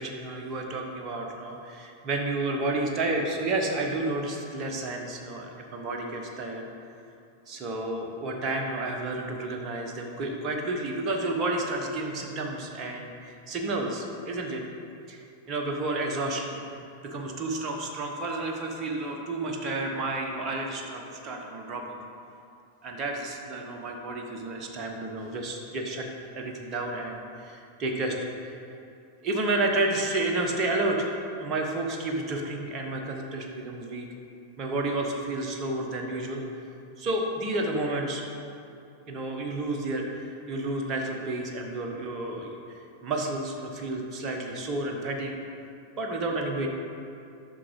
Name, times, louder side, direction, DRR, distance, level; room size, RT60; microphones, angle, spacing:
voice 1, 0.0-6.7 7.5-14.6 15.1-16.6 17.0-22.0 22.8-26.1 26.3-28.6 29.2-34.1 34.6-36.4 37.0-38.2 39.1-42.5 43.0-45.4 46.0-46.7, right 2 dB, 35° right, 1 dB, 1.1 m, -31 dB
9.9 x 6.1 x 3.2 m, 2.6 s
figure-of-eight pair, 90°, 0 cm